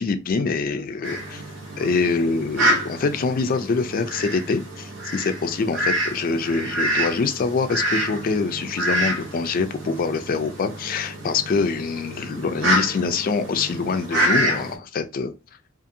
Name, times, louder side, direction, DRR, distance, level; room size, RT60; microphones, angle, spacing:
voice 1, 0.0-1.4 1.8-15.3, left 4 dB, 45° left, 0.3 m, -25 dB
Fowl, 1.0-14.7, right 1 dB, 65° right, 0.8 m, -27 dB
2.6 x 2.4 x 2.6 m
head